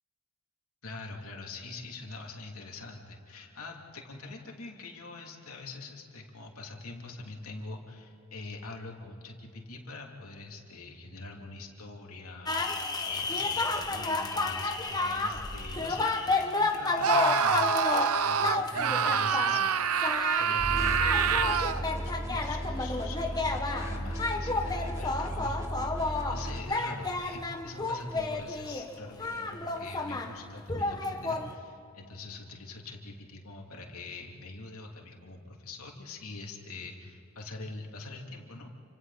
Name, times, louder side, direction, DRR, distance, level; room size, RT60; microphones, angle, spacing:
voice 1, 0.8-19.6 20.4-38.7, left 2 dB, 80° left, 0 dB, 3.1 m, -44 dB
sound 1, 12.5-19.7 19.9-20.6 20.9-30.4 30.7-31.5, left 3 dB, 15° left, 1.3 m, -31 dB
Screaming, 17.0-21.9, right 7 dB, 85° right, 0.7 m, -26 dB
sound 2, 20.6-26.6, equal, 15° right, 1.8 m, -35 dB
29.5 x 26.0 x 4.3 m, 2.7 s
head